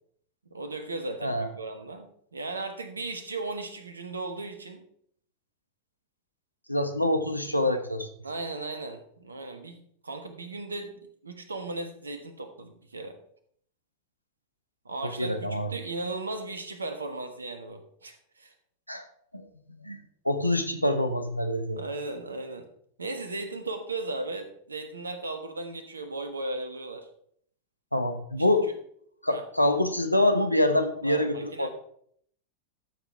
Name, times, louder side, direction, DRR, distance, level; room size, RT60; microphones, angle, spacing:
voice 1, 0.5-4.8 8.2-10.9 11.2-13.2 14.8-18.5 21.8-22.6 23.0-27.1 29.3-29.4 31.0-31.7, right 2 dB, 75° right, 7 dB, 1.3 m, -36 dB
voice 2, 6.7-8.1 15.0-15.7 18.9-19.0 19.3-20.0 20.2-21.8 27.9-28.7 29.2-31.7, left 1 dB, 90° left, 7 dB, 1.0 m, -26 dB
13.0 x 7.0 x 3.4 m, 0.65 s
figure-of-eight pair, 90°, 0 cm